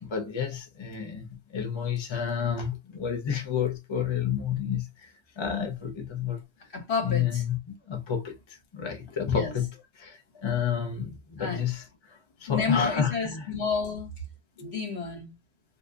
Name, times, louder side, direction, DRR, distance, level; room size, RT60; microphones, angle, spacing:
voice 1, 0.0-6.4 7.0-9.7 9.9-13.5 14.6-14.8, left 8 dB, 30° left, 0.5 m, -30 dB
voice 2, 6.7-7.4 9.3-9.5 11.4-11.6 12.5-14.1 14.6-15.3, left 5 dB, 60° left, 1.4 m, -30 dB
2.7 x 2.3 x 3.7 m
omnidirectional pair, 1.3 m